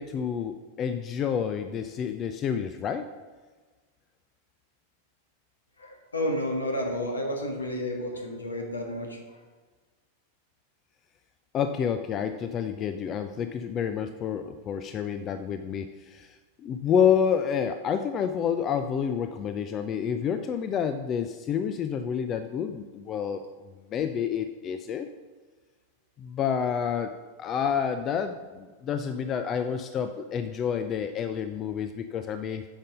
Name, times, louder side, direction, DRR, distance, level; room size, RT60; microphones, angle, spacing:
voice 1, 0.0-3.1 11.5-23.4 23.9-25.1 26.2-32.7, left 7 dB, 30° left, 9 dB, 0.4 m, -29 dB
voice 2, 5.8-9.4, left 1 dB, 75° left, 3 dB, 1.5 m, -31 dB
8.8 x 5.3 x 5.4 m, 1.4 s
figure-of-eight pair, 90°, 0 cm